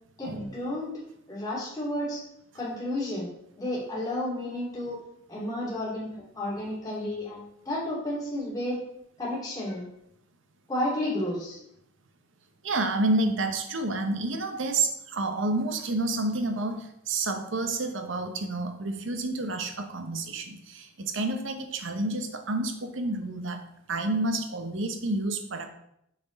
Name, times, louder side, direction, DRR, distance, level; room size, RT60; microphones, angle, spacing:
voice 1, 0.2-0.9 1.3-2.2 2.5-3.3 3.6-5.0 5.3-8.8 9.2-9.8 10.7-11.6, left 1 dB, 20° left, -7 dB, 2.7 m, -32 dB
voice 2, 12.6-25.7, right 2 dB, 60° right, 6 dB, 0.8 m, -29 dB
7.0 x 4.4 x 4.0 m, 0.76 s
head